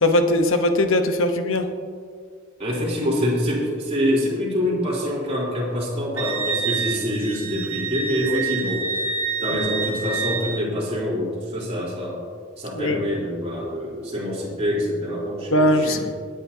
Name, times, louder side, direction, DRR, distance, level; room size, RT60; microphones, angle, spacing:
voice 1, 0.0-1.7 8.3-8.4 12.7-13.0 15.5-16.0, left 1 dB, 70° left, 6 dB, 1.0 m, -20 dB
voice 2, 2.6-9.1 9.4-12.2 12.6-16.0, equal, 30° right, -5 dB, 3.7 m, -25 dB
Wind instrument woodwind instrument, 6.2-10.6, right 5 dB, 85° right, 1.3 m, -27 dB
21.0 x 9.6 x 2.8 m, 2.1 s
head